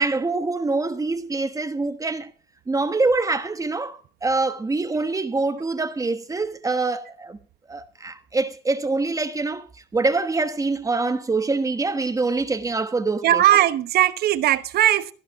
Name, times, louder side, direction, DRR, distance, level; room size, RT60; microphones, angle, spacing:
voice 1, 0.0-2.3 2.7-7.4 7.7-9.7 9.9-13.4, right 3 dB, 20° right, 1.2 m, -25 dB
voice 2, 13.2-15.1, right 12 dB, 70° right, 1.0 m, -18 dB
14.5 x 11.5 x 3.6 m
cardioid pair, 110°, 17 cm